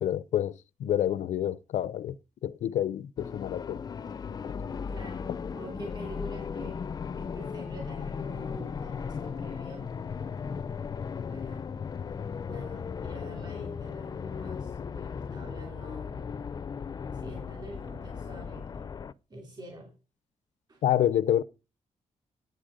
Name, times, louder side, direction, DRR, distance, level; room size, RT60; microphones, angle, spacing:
voice 1, 0.0-0.5 0.8-2.1 2.4-3.8 4.4-4.5 20.8-21.4, left 11 dB, 90° left, 0.5 m, -28 dB
sound 1, 3.2-19.1, left 6 dB, 35° left, 0.4 m, -36 dB
voice 2, 4.9-6.9 7.2-9.9 11.3-11.8 12.5-16.4 17.1-18.9 19.3-19.9 20.7-20.8, right 1 dB, 35° right, 2.9 m, -46 dB
10.0 x 8.0 x 5.1 m
wide cardioid pair, 160°, 12 cm